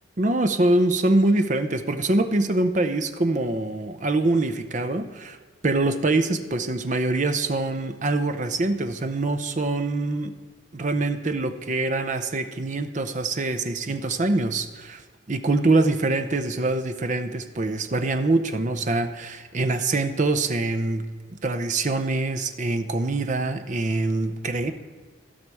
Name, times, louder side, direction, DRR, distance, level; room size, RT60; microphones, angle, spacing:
voice 1, 0.2-5.4 5.6-10.3 10.7-15.0 15.3-21.1 21.4-24.7, right 2 dB, 40° right, 9 dB, 0.6 m, -24 dB
15.0 x 5.8 x 4.8 m, 1.5 s
head